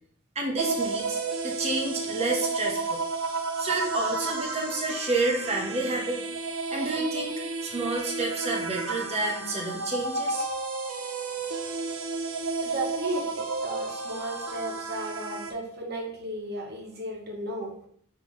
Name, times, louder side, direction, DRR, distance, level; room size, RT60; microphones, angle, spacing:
voice 1, 0.4-3.0 3.6-6.2 6.7-10.5, right 2 dB, 30° right, 1 dB, 0.7 m, -29 dB
sound 1, 0.6-15.5, right 3 dB, 80° right, 0.7 m, -32 dB
voice 2, 12.6-17.7, right 1 dB, 50° right, 0 dB, 1.0 m, -34 dB
5.5 x 2.8 x 3.1 m, 0.62 s
head